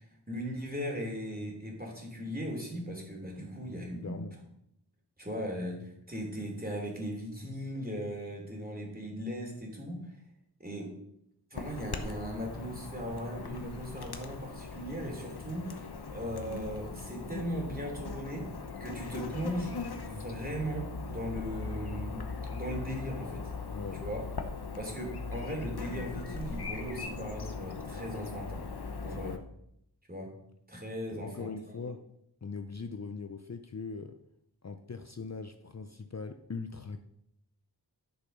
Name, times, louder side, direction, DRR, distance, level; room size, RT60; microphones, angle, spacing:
voice 1, 0.0-4.2 5.2-10.1 10.6-11.0 11.5-15.7 16.1-18.5 18.8-23.5 24.0-24.2 24.8-28.7 29.0-29.3 30.1-30.3 30.7-31.8, equal, 20° right, 0 dB, 3.1 m, -38 dB
voice 2, 4.0-4.4 23.7-24.0 29.1-29.4 31.1-32.1 32.4-34.2 34.6-37.0, left 4 dB, 40° left, 8 dB, 0.6 m, -40 dB
Chirp tweet / Buzz, 11.5-29.4, left 4 dB, 65° left, 1.1 m, -40 dB
10.5 x 6.7 x 5.4 m, 0.77 s
wide cardioid pair, 65°, 41 cm